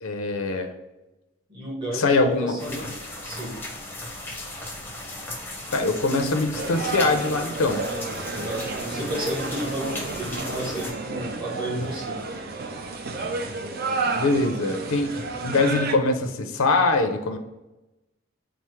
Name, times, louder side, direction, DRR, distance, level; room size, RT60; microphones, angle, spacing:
voice 1, 0.0-0.7 1.9-2.9 4.3-4.5 5.7-7.9 14.1-15.1 15.4-17.4, left 3 dB, 75° left, 6 dB, 0.5 m, -23 dB
voice 2, 1.5-2.9 3.2-3.5 8.4-12.2, right 1 dB, 25° right, -2 dB, 1.0 m, -32 dB
sound 1, 2.6-10.9, left 1 dB, 10° left, 0.6 m, -36 dB
sound 2, 6.5-15.9, right 3 dB, 45° right, 0.4 m, -31 dB
4.5 x 2.0 x 4.3 m, 1.0 s
head